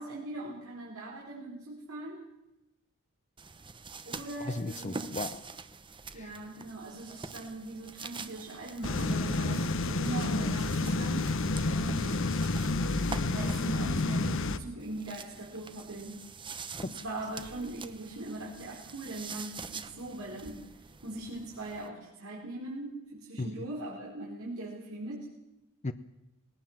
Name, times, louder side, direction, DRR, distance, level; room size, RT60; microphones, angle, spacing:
voice 1, 0.0-2.3 4.0-5.0 6.1-11.4 11.6-12.1 13.3-16.2 16.8-20.6 21.0-25.3, right 2 dB, 90° right, -5 dB, 4.4 m, -40 dB
sound 1, 3.4-13.8 14.8-21.9, right 4 dB, 25° right, 0.9 m, -45 dB
voice 2, 4.4-5.5 6.1-6.4 16.8-16.9 23.4-23.6 25.8-25.9, left 2 dB, 35° left, 10 dB, 0.7 m, -36 dB
sound 2, 8.8-14.6, left 2 dB, 65° left, 1.1 m, -29 dB
20.0 x 18.5 x 7.3 m, 0.93 s
head